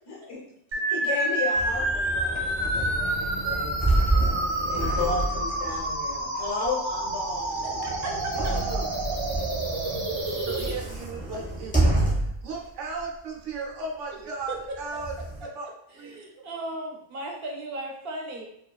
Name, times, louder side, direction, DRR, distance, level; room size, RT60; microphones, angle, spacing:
voice 1, 0.1-0.4 0.9-3.7 4.1-7.7, left 4 dB, 75° left, -4 dB, 1.3 m, -34 dB
sound 1, 0.7-10.7, right 1 dB, 45° right, 0.3 m, -29 dB
sound 2, 1.5-12.5 13.0-13.1 14.6-15.4, right 2 dB, 10° left, 0.6 m, -29 dB
voice 2, 7.6-8.4 9.8-10.0 14.5-14.6 15.9-18.5, right 1 dB, 60° right, 0 dB, 0.7 m, -36 dB
voice 3, 8.4-9.0 10.3-15.2 15.4-16.2, right 3 dB, 90° right, -1 dB, 1.0 m, -36 dB
2.9 x 2.3 x 2.3 m, 0.73 s
omnidirectional pair, 1.2 m